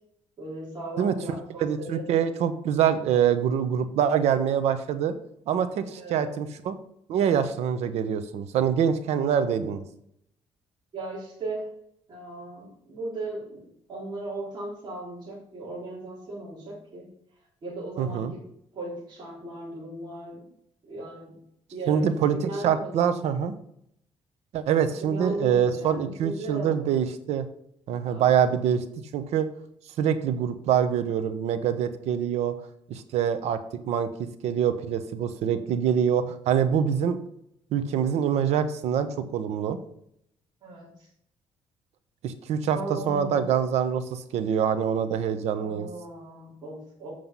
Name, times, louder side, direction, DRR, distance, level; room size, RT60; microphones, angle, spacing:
voice 1, 0.4-2.0 6.0-6.2 10.9-11.7 12.1-13.4 13.9-17.1 17.6-18.4 18.7-20.4 20.8-21.4 21.7-22.0 22.3-23.0 25.0-26.8 28.0-28.3 40.6-40.9 42.7-43.5 45.6-47.1, right 2 dB, 45° right, -6 dB, 4.4 m, -37 dB
voice 2, 1.6-5.1 5.5-6.7 7.1-9.8 18.0-18.3 21.9-23.5 24.5-27.5 27.9-28.8 29.1-29.5 30.0-32.5 32.9-33.6 33.9-37.2 37.7-39.8 42.2-45.9, right 8 dB, 80° right, 11 dB, 1.1 m, -25 dB
7.8 x 6.7 x 5.6 m, 0.72 s
cardioid pair, 130°, 11 cm